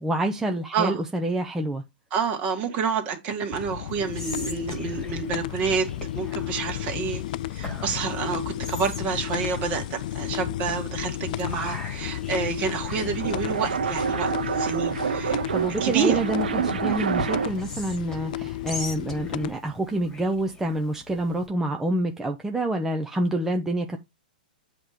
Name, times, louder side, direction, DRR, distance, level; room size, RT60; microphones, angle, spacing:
voice 1, 0.0-1.8 15.5-24.0, right 1 dB, 5° right, 0.6 m, -27 dB
voice 2, 2.1-7.2 7.5-14.3 14.6-15.4 15.8-16.2, right 6 dB, 30° right, 1.9 m, -28 dB
sound 1, 3.5-19.5, left 14 dB, 55° left, 0.4 m, -33 dB
Whispering, 3.9-21.5, left 2 dB, 10° left, 1.9 m, -42 dB
sound 2, 12.8-17.7, right 7 dB, 85° right, 0.7 m, -27 dB
7.9 x 3.1 x 5.0 m
hypercardioid pair, 145°, 5 cm